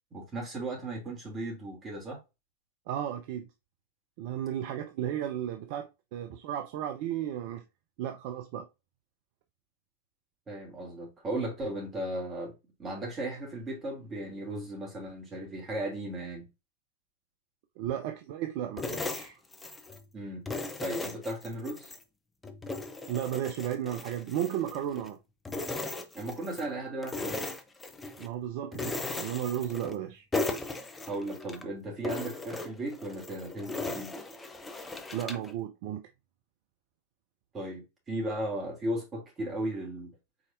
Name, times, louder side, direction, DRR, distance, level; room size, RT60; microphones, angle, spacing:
voice 1, 0.1-2.2 10.5-12.5 12.8-16.5 20.1-20.5 20.8-21.9 26.1-27.5 31.1-34.1 37.5-40.1, right 1 dB, 25° right, 2.7 m, -36 dB
voice 2, 2.9-3.4 4.2-7.6 8.0-8.7 17.8-19.4 23.1-25.2 28.2-30.2 35.1-36.0, right 11 dB, 45° right, 0.5 m, -34 dB
sound 1, 18.8-20.0 20.5-22.0 22.4-25.1 25.4-26.7 27.0-28.3 28.7-30.0 30.3-31.6 32.0-35.5, left 2 dB, 10° left, 0.7 m, -37 dB
5.0 x 4.1 x 2.5 m
figure-of-eight pair, 90°, 0 cm